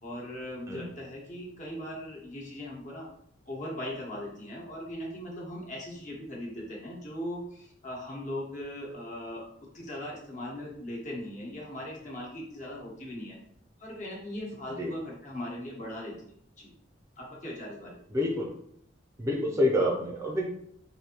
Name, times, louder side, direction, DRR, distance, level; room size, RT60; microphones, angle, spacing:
voice 1, 0.0-3.1 3.5-9.4 9.7-13.4 13.8-16.1 16.6-16.7 17.2-18.0, left 1 dB, 40° left, -3 dB, 1.2 m, -39 dB
voice 2, 18.1-18.5 19.2-20.5, left 1 dB, 15° right, -2 dB, 0.5 m, -27 dB
4.8 x 2.7 x 2.9 m, 0.69 s
head